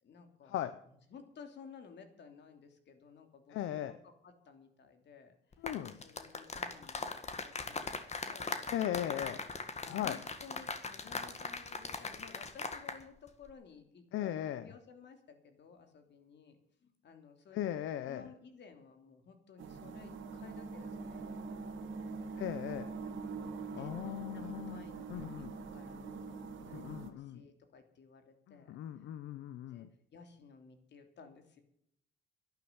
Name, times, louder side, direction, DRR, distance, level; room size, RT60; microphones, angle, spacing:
voice 1, 0.0-0.6 0.9-7.1 7.4-9.3 9.8-16.6 16.8-17.7 18.0-22.7 23.7-29.1 29.6-31.6, left 5 dB, 60° left, 6 dB, 3.0 m, -56 dB
voice 2, 3.5-3.9 5.6-5.9 8.7-9.4 9.9-10.2 14.1-14.7 17.5-18.3 22.4-22.9 23.7-25.5 26.6-27.4 28.5-29.9, left 11 dB, 80° left, 12 dB, 0.8 m, -38 dB
sound 1, 5.5-13.0 13.3-13.5, left 4 dB, 35° left, 1.9 m, -40 dB
sound 2, 19.6-27.1, right 4 dB, 75° right, 2.1 m, -43 dB
11.5 x 11.0 x 8.1 m, 0.71 s
cardioid pair, 90°, 20 cm